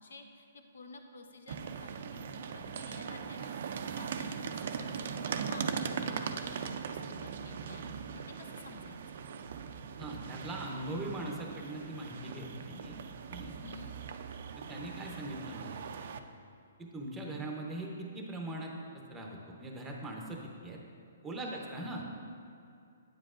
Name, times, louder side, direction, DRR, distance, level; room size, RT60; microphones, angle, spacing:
voice 1, 0.0-5.7 6.2-9.2 13.6-13.9 21.4-21.7, left 4 dB, 80° left, 5 dB, 0.8 m, -52 dB
sound 1, 1.5-16.2, right 6 dB, 55° right, 0.4 m, -40 dB
voice 2, 10.0-13.0 13.3-13.6 14.7-15.9 16.8-20.8 21.2-22.0, right 1 dB, 5° right, 0 dB, 0.7 m, -41 dB
9.0 x 7.5 x 2.5 m, 2.5 s
hypercardioid pair, 165°, 0 cm